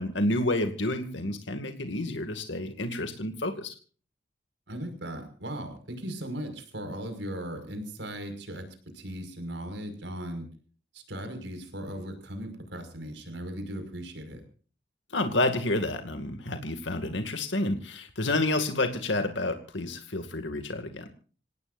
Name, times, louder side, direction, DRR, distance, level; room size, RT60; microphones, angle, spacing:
voice 1, 0.0-3.7 15.1-21.1, left 2 dB, 90° left, 7 dB, 2.3 m, -29 dB
voice 2, 4.7-8.7 8.9-10.5 10.9-14.4, right 1 dB, 80° right, 7 dB, 5.7 m, -37 dB
27.5 x 18.0 x 2.6 m, 0.41 s
head